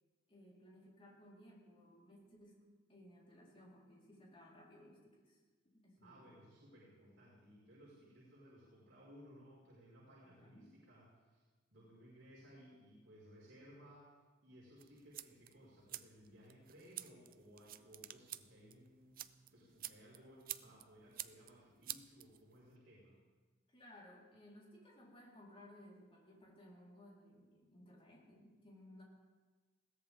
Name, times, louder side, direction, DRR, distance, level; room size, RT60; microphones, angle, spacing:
voice 1, 0.3-2.6 2.9-5.4 5.7-6.4 10.2-10.7 23.7-29.0, left 1 dB, 30° left, -4 dB, 4.3 m, -60 dB
voice 2, 6.0-11.4 11.7-14.1 14.4-23.2, equal, 65° right, -7 dB, 5.5 m, -60 dB
sound 1, 14.8-22.8, right 13 dB, 45° right, 0.5 m, -51 dB
21.0 x 17.0 x 3.7 m, 1.4 s
head